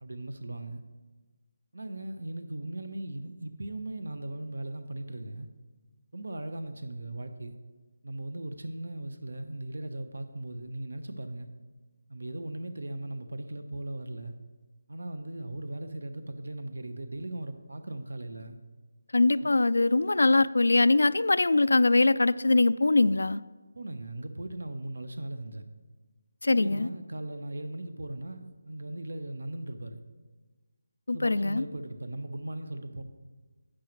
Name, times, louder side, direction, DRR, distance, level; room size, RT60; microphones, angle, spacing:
voice 1, 0.0-0.8 1.7-5.5 6.1-7.5 8.0-11.5 12.1-14.3 14.9-18.6 19.4-19.5 23.7-25.7 26.5-30.0 31.1-33.0, right 1 dB, 85° right, 9 dB, 1.0 m, -38 dB
voice 2, 19.1-23.4 26.4-26.9 31.1-31.6, left 2 dB, 80° left, 17 dB, 0.3 m, -22 dB
11.0 x 8.6 x 3.2 m, 1.3 s
figure-of-eight pair, 170°, 0 cm